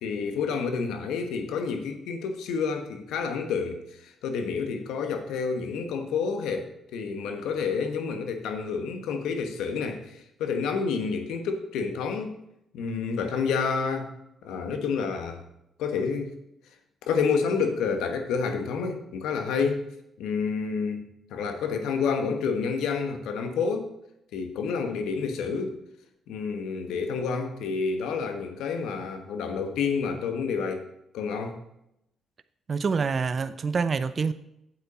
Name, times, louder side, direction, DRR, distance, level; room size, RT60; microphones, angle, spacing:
voice 1, 0.0-12.3 12.7-14.1 14.4-15.4 15.8-16.4 17.0-19.8 20.2-21.0 21.3-23.9 24.3-25.8 26.3-30.9 31.1-31.6, left 5 dB, 85° left, 7 dB, 1.3 m, -29 dB
voice 2, 32.7-34.3, right 5 dB, 40° right, 12 dB, 0.5 m, -26 dB
8.8 x 8.2 x 4.2 m, 0.82 s
cardioid pair, 90°, 0 cm